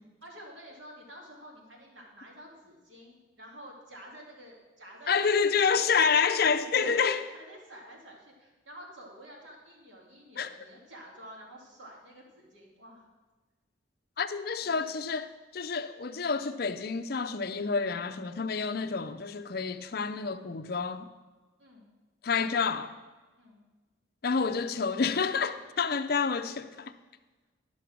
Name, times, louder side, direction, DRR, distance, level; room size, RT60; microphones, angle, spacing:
voice 1, 0.2-6.3 6.8-7.0 7.3-13.1 14.6-15.0 21.6-21.9 23.4-23.6, equal, 75° right, 2.4 m, -50 dB
voice 2, 5.1-7.2 10.4-10.5 14.2-21.0 22.2-22.9 24.2-26.9, left 5 dB, 50° left, 0.5 m, -28 dB
12.0 x 5.9 x 6.1 m
head